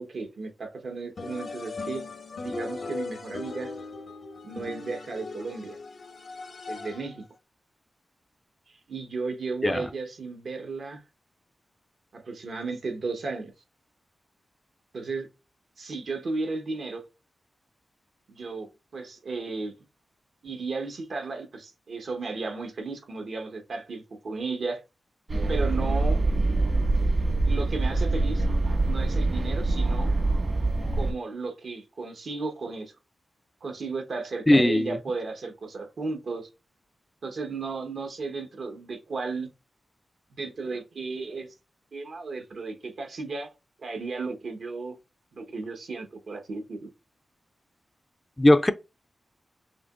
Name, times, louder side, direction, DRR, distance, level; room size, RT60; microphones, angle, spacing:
voice 1, 0.0-2.0 2.4-3.7 4.4-5.8 6.7-7.2 8.7-11.0 12.1-13.5 14.9-15.3 15.8-17.0 18.3-19.7 20.4-24.8 25.5-26.2 27.4-28.4 28.8-30.1 30.9-32.9 33.6-36.5 37.2-39.5 40.3-41.5 41.9-43.5 43.8-45.0 45.3-46.9, right 3 dB, 70° right, 1.0 m, -34 dB
sound 1, 1.2-7.2, left 3 dB, 65° left, 0.7 m, -38 dB
sound 2, 25.3-31.1, right 2 dB, 55° right, 1.4 m, -24 dB
voice 2, 34.5-35.0 48.4-48.7, left 1 dB, 15° left, 0.4 m, -19 dB
5.8 x 3.0 x 2.4 m
cardioid pair, 70°, 0 cm